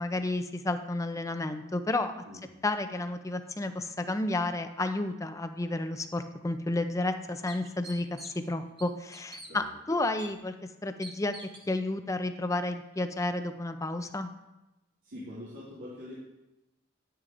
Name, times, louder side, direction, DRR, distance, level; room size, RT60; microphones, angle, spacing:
voice 1, 0.0-2.2 2.6-10.5 10.8-11.4 11.7-14.3, left 2 dB, 15° left, 9 dB, 0.4 m, -31 dB
sound 1, 6.4-6.5 7.0-7.1 7.5-8.5 8.8-9.5 10.2-10.3 11.0-11.7, right 2 dB, 25° right, 0.9 m, -46 dB
voice 2, 15.0-16.2, left 1 dB, 85° right, -9 dB, 2.2 m, -43 dB
10.0 x 9.6 x 2.5 m, 0.99 s
head